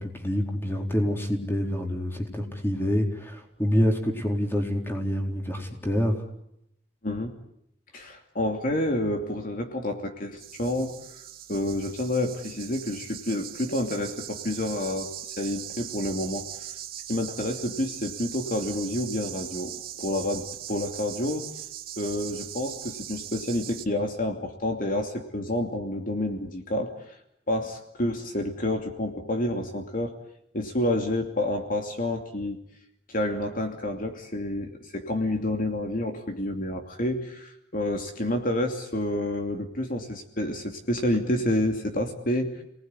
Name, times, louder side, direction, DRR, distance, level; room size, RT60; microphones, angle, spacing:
voice 1, 0.0-6.2, equal, 15° left, 3 dB, 4.2 m, -27 dB
voice 2, 7.9-11.0 11.5-16.5 17.1-21.5 22.0-27.2 27.5-30.1 30.5-32.6 33.1-42.6, left 1 dB, 50° left, 4 dB, 2.8 m, -29 dB
sound 1, 10.4-23.9, right 11 dB, 55° right, 1.9 m, -40 dB
30.0 x 19.5 x 9.8 m, 0.78 s
head